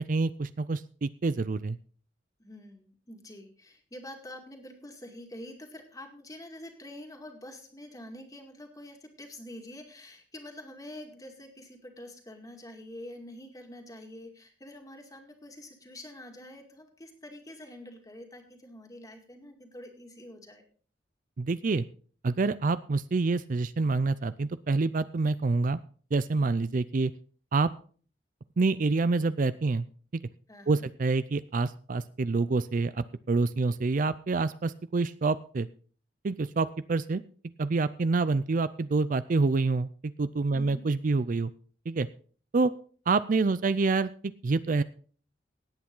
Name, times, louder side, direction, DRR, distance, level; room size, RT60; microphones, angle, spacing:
voice 1, 0.0-1.8 21.4-21.8 22.2-25.8 26.1-27.1 27.5-27.7 28.6-29.8 30.1-30.2 30.7-35.7 36.2-37.2 37.6-41.5 41.9-42.1 42.5-42.7 43.1-44.1 44.4-44.8, right 3 dB, 50° right, 15 dB, 0.5 m, -27 dB
voice 2, 2.4-20.6 30.5-30.9 40.5-40.9, left 1 dB, 20° left, 3 dB, 2.2 m, -46 dB
17.5 x 8.6 x 3.8 m, 0.43 s
head